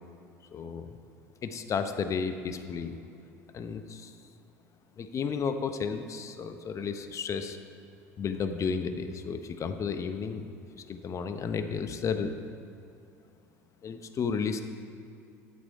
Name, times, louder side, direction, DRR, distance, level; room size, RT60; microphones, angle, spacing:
voice 1, 0.5-1.0 1.4-3.0 3.5-4.1 5.0-7.6 8.2-10.5 10.7-12.3 13.8-14.6, left 6 dB, 35° left, 8 dB, 0.8 m, -33 dB
11.0 x 8.2 x 4.6 m, 2.6 s
hypercardioid pair, 80°, 9 cm